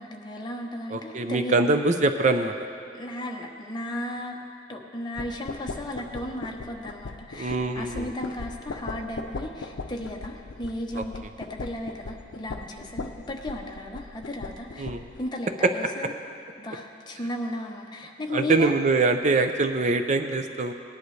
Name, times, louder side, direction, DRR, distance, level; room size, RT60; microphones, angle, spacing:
voice 1, 0.0-1.6 2.9-4.4 4.7-14.9 15.2-16.1 16.6-18.7, left 1 dB, 25° left, 1 dB, 0.9 m, -35 dB
voice 2, 0.9-2.5 7.4-8.1 11.0-11.1 14.8-15.0 15.6-15.7 18.3-20.7, right 3 dB, 40° right, 7 dB, 0.5 m, -23 dB
sound 1, 5.2-15.2, left 3 dB, 85° left, 0.5 m, -39 dB
18.5 x 10.5 x 3.2 m, 2.4 s
head